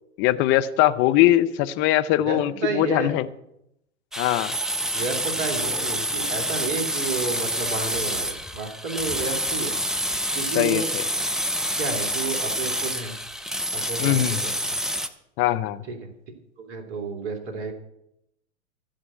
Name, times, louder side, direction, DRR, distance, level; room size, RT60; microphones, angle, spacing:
voice 1, 0.2-3.3 4.2-4.5 9.2-9.3 10.5-11.0 14.0-14.4 15.4-15.8, left 14 dB, 30° left, 11 dB, 0.8 m, -21 dB
voice 2, 2.2-3.2 4.9-9.8 10.3-10.9 11.8-13.1 13.7-14.8 15.9-16.1 16.6-17.7, right 4 dB, 35° right, 4 dB, 2.7 m, -31 dB
sound 1, 4.1-15.1, equal, ahead, 0.5 m, -27 dB
14.5 x 5.6 x 8.9 m, 0.81 s
hypercardioid pair, 105°, 37 cm